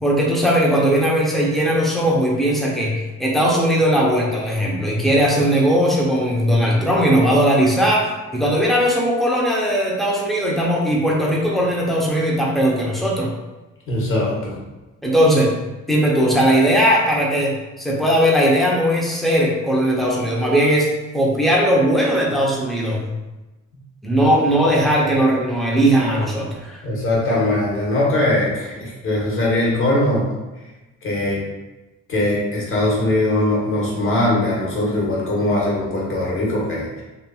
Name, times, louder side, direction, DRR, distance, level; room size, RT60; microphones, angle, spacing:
voice 1, 0.0-2.9 3.2-13.3 15.0-15.5 15.9-20.9 21.1-23.1 24.0-26.8, equal, ahead, -4 dB, 0.7 m, -18 dB
voice 2, 13.9-14.6 24.2-24.3 26.8-30.3 31.0-31.4 32.1-37.0, left 1 dB, 45° left, -4 dB, 1.1 m, -21 dB
3.0 x 2.6 x 2.3 m, 1.1 s
cardioid pair, 90°, 30 cm